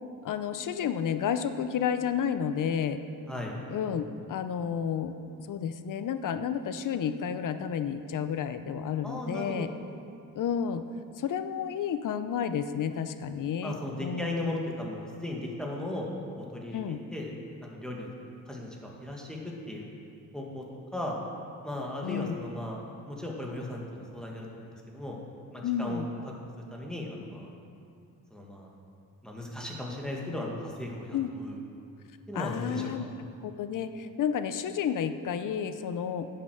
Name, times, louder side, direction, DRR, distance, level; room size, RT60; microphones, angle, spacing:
voice 1, 0.2-3.0 3.7-4.0 4.3-5.1 5.5-9.7 10.4-10.8 11.2-14.5 16.7-17.0 22.0-22.3 25.6-26.1 31.1-31.3 32.3-33.0 33.4-36.3, left 8 dB, 60° left, 10 dB, 0.7 m, -31 dB
voice 2, 9.0-9.7 13.6-16.1 16.4-17.3 17.6-18.1 18.5-19.9 20.3-20.6 20.9-21.1 21.6-22.8 23.1-25.2 25.5-26.0 26.7-27.5 28.3-28.7 29.2-31.6 32.3-33.1, left 1 dB, ahead, -2 dB, 1.9 m, -37 dB
9.8 x 7.8 x 6.4 m, 2.5 s
cardioid pair, 105°, 35 cm